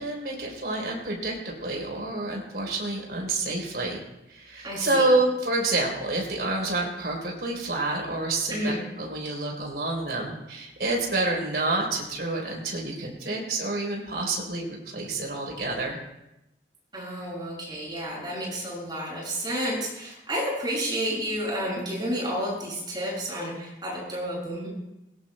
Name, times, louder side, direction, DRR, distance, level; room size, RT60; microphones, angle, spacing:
voice 1, 0.0-4.0 4.3-16.0, right 2 dB, 65° right, -1 dB, 3.7 m, -28 dB
voice 2, 4.6-5.1 8.5-8.8 16.9-24.7, equal, 25° right, -4 dB, 6.6 m, -31 dB
20.5 x 18.5 x 2.2 m, 0.90 s
head